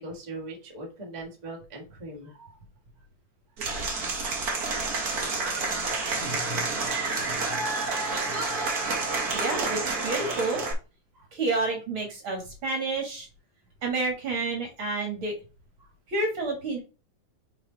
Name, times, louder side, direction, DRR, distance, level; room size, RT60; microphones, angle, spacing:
voice 1, 0.0-2.6 6.5-7.1 8.5-8.6 11.1-11.3 15.8-15.9, right 2 dB, 20° right, -2 dB, 1.2 m, -41 dB
Applause / Crowd, 3.6-10.7, right 3 dB, 65° right, 0.9 m, -29 dB
voice 2, 9.3-10.6 11.3-13.3 13.8-15.3 16.1-16.8, right 3 dB, 45° right, 1 dB, 2.1 m, -29 dB
5.9 x 4.7 x 4.0 m, 0.32 s
omnidirectional pair, 3.8 m